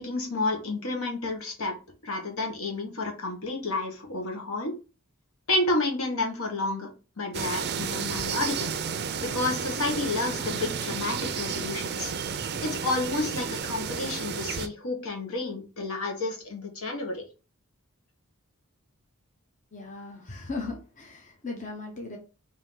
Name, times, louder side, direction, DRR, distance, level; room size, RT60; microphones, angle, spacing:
voice 1, 0.0-1.7 2.0-4.7 5.5-6.9 7.2-8.7 9.2-12.1 12.6-17.2, left 2 dB, 70° left, 2 dB, 1.3 m, -30 dB
sound 1, 7.3-14.7, right 6 dB, 50° right, 0.5 m, -32 dB
voice 2, 19.7-22.2, left 3 dB, 35° left, 1 dB, 0.8 m, -37 dB
4.4 x 2.7 x 3.7 m, 0.33 s
head